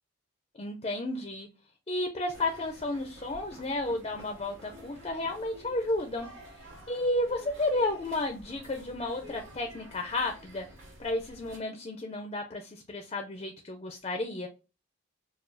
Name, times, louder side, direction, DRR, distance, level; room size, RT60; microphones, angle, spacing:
voice 1, 0.6-1.5 1.9-6.3 6.5-10.7 11.0-14.5, left 2 dB, 30° left, 4 dB, 0.4 m, -32 dB
sound 1, 2.3-11.6, equal, 70° right, 2.0 m, -50 dB
6.6 x 2.3 x 2.6 m, 0.31 s
head